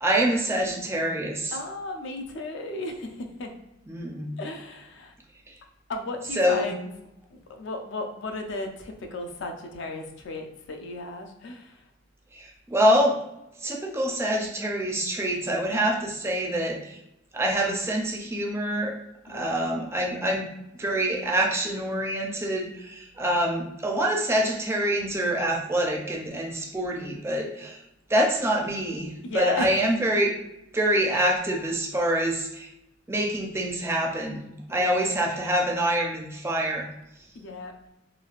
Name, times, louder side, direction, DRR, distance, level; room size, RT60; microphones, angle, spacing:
voice 1, 0.0-1.5 3.9-4.3 6.4-6.7 12.3-13.2 13.6-17.0 17.3-19.0 19.3-20.5 20.8-27.8 28.1-30.3 30.7-32.7 33.1-36.9, right 1 dB, 15° right, 0 dB, 0.4 m, -26 dB
voice 2, 1.5-3.5 4.4-5.1 5.9-6.9 7.3-11.8 19.3-19.6 29.2-29.8 34.7-35.1 37.4-37.8, left 2 dB, 65° left, 4 dB, 0.4 m, -35 dB
3.2 x 2.3 x 2.4 m, 0.87 s
head